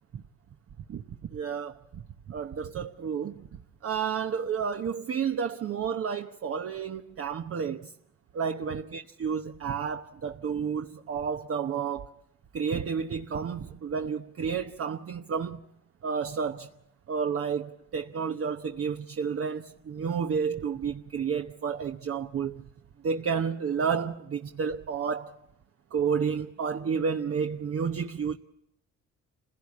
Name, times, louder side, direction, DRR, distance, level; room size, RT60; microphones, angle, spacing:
voice 1, 0.9-7.9 8.3-12.1 12.5-15.6 16.0-16.7 17.1-22.7 23.0-25.4 25.9-28.4, right 6 dB, 50° right, 1.0 m, -31 dB
27.0 x 16.5 x 8.5 m
cardioid pair, 90°, 30 cm